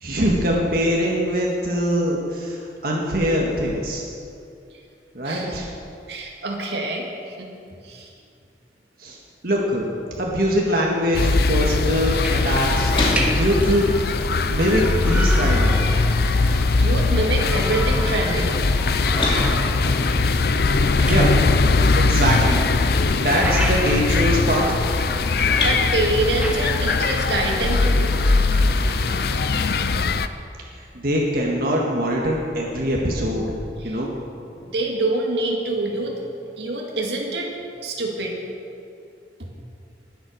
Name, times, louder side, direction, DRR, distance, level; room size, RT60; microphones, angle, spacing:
voice 1, 0.0-4.0 5.1-5.7 9.0-9.2 9.4-9.9 10.2-13.9 14.5-15.9 21.1-21.4 21.9-22.6 23.2-24.8 30.8-33.5 33.8-34.1, equal, 55° right, -2 dB, 1.8 m, -22 dB
voice 2, 5.2-5.6 6.1-8.1 10.1-10.2 16.5-18.5 25.6-28.2 33.8-34.0 34.6-36.2 36.6-37.5 37.8-38.3 39.4-39.5, right 2 dB, 70° right, 0 dB, 2.1 m, -26 dB
sound 1, 11.1-30.3, left 3 dB, 60° left, 0.6 m, -20 dB
sound 2, 11.4-29.5, left 1 dB, 30° left, 2.8 m, -34 dB
sound 3, 12.0-29.8, equal, 10° right, 1.3 m, -34 dB
20.0 x 8.0 x 6.6 m, 2.5 s
head